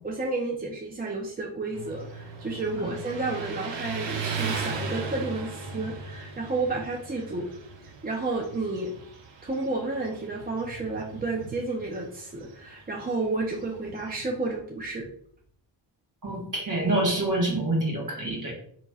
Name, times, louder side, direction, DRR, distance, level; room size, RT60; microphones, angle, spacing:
voice 1, 0.0-7.5 8.0-8.9 9.4-15.1, right 3 dB, 20° right, -1 dB, 0.6 m, -31 dB
Motorcycle, 1.7-14.3, right 4 dB, 65° right, 0.7 m, -38 dB
voice 2, 16.2-18.5, right 1 dB, 40° right, -1 dB, 1.4 m, -26 dB
4.2 x 2.9 x 2.3 m, 0.64 s
cardioid pair, 70°, 47 cm